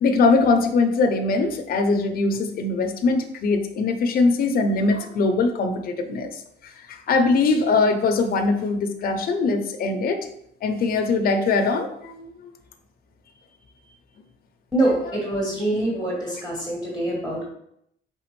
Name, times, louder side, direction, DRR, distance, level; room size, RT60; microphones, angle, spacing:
voice 1, 0.0-6.4 6.9-10.3 10.6-12.5, left 3 dB, 45° left, 5 dB, 0.5 m, -21 dB
voice 2, 14.7-17.4, right 1 dB, 5° right, -4 dB, 1.0 m, -24 dB
4.9 x 3.4 x 3.0 m, 0.73 s
cardioid pair, 165°, 20 cm